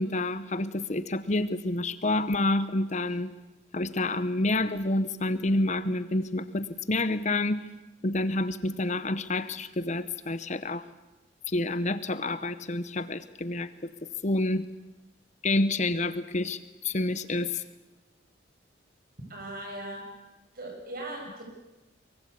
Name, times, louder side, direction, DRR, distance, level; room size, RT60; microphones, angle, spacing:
voice 1, 0.0-3.3 3.7-7.7 8.0-10.9 11.5-13.7 14.2-14.7 15.4-17.6, left 2 dB, 35° left, 13 dB, 0.9 m, -28 dB
voice 2, 19.3-20.1 20.5-21.4, right 1 dB, 50° right, 2 dB, 7.3 m, -38 dB
23.5 x 22.5 x 8.5 m, 1.1 s
head